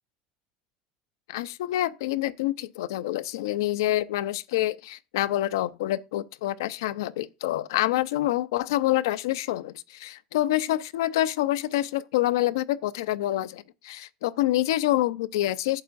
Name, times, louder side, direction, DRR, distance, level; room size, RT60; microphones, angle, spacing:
voice 1, 1.3-15.8, left 14 dB, 85° left, 0.5 m, -27 dB
11.5 x 7.3 x 2.5 m
supercardioid pair, 100°, 2 cm